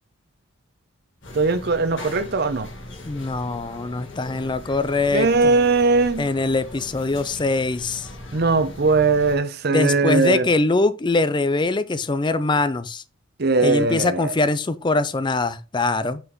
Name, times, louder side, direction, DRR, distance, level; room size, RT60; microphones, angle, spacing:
sound 1, 1.2-9.4, left 1 dB, 60° left, 1.9 m, -39 dB
voice 1, 1.3-2.7 5.1-6.3 8.3-10.5 13.4-14.3, right 3 dB, 50° right, 0.7 m, -20 dB
voice 2, 3.0-5.5 6.2-8.1 9.7-13.0 13.6-16.2, left 3 dB, 20° left, 0.5 m, -23 dB
5.7 x 5.5 x 3.1 m
head